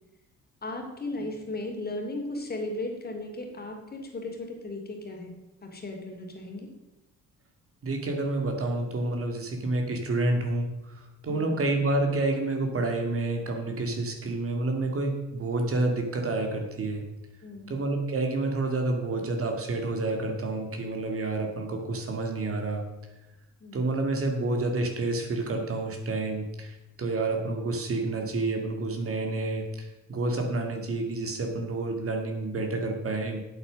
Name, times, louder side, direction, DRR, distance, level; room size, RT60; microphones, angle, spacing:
voice 1, 0.6-5.3 5.6-6.7 11.3-11.7 17.4-17.8 23.6-23.8, left 2 dB, 30° left, 2 dB, 2.7 m, -36 dB
voice 2, 7.8-10.7 11.2-17.0 17.7-22.8 23.7-26.7 27.0-29.6 30.1-33.4, right 2 dB, 50° right, 3 dB, 2.1 m, -29 dB
8.3 x 8.1 x 6.3 m, 0.98 s
cardioid pair, 90°, 30 cm